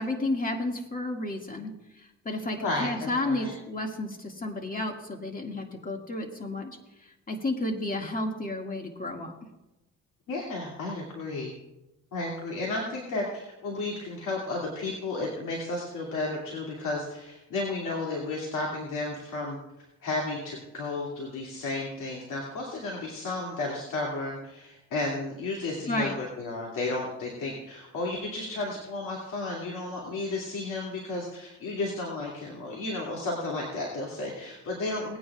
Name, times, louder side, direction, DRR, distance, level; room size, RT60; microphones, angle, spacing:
voice 1, 0.0-1.7 2.3-6.8 7.3-9.3 25.9-26.1, left 2 dB, 30° left, 2 dB, 2.0 m, -31 dB
voice 2, 2.6-3.6 10.3-11.5 12.1-19.6 20.0-35.2, left 2 dB, 80° left, -2 dB, 2.5 m, -33 dB
19.5 x 9.4 x 2.4 m, 0.94 s
cardioid pair, 90°, 30 cm